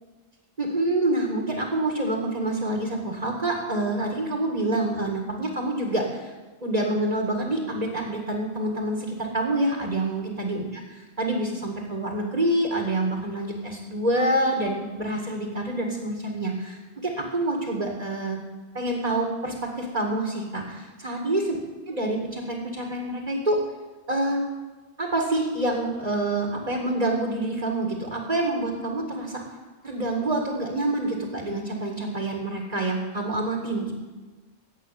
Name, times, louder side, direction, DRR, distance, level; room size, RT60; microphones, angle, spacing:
voice 1, 0.6-6.3 6.6-18.4 18.7-21.6 21.9-23.6 24.1-24.4 25.0-29.4 29.8-33.9, right 1 dB, 35° right, 1 dB, 2.2 m, -27 dB
15.5 x 8.5 x 9.3 m, 1.3 s
omnidirectional pair, 1.2 m